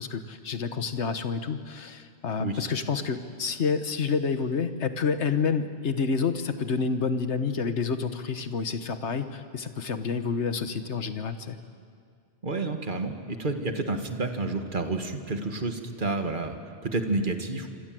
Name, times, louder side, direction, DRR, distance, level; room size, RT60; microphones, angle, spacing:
voice 1, 0.0-11.6, left 5 dB, 75° left, 9 dB, 1.6 m, -29 dB
voice 2, 12.4-17.7, right 3 dB, 45° right, 6 dB, 1.9 m, -30 dB
26.5 x 26.0 x 7.7 m, 2.3 s
omnidirectional pair, 1.2 m